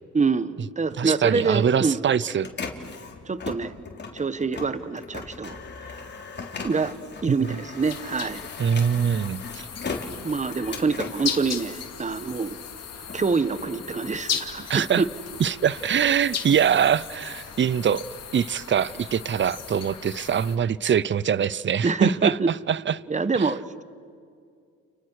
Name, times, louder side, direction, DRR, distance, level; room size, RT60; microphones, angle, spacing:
voice 1, 0.1-2.0 3.2-3.7 4.1-6.0 6.6-6.9 7.2-8.5 10.2-12.6 13.1-15.1 21.8-22.5 23.1-23.8, right 4 dB, 25° right, 1.2 m, -26 dB
Printer, 1.0-12.4 12.8-14.7, left 4 dB, 35° left, 3.6 m, -39 dB
voice 2, 1.0-2.5 7.3-7.6 8.6-9.7 14.7-15.0 15.4-18.0 18.3-23.0 23.3-23.5, right 8 dB, 40° right, 0.7 m, -23 dB
sound 1, 7.8-20.6, left 7 dB, 55° left, 2.7 m, -37 dB
30.0 x 29.0 x 6.5 m
cardioid pair, 90°, 30 cm